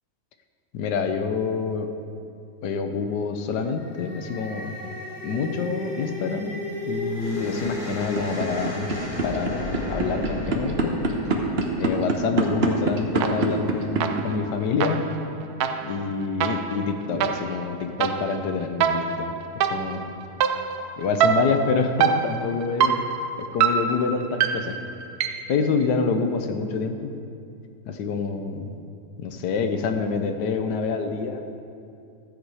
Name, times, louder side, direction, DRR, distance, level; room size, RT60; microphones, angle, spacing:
voice 1, 0.7-1.9 2.6-4.8 5.2-6.5 6.9-8.9 9.2-11.0 11.8-15.1 15.8-19.3 19.7-20.1 21.0-23.0 23.4-24.8 25.5-27.2 27.8-28.8 29.2-31.5, left 5 dB, 80° left, 7 dB, 1.4 m, -27 dB
sound 1, 3.6-12.9, left 1 dB, 25° left, 1.9 m, -34 dB
sound 2, 8.0-14.2, right 3 dB, 45° right, 1.1 m, -23 dB
sound 3, 13.2-13.7 14.0-25.6, right 7 dB, 70° right, 1.1 m, -26 dB
13.0 x 8.2 x 4.8 m, 2.5 s
omnidirectional pair, 1.8 m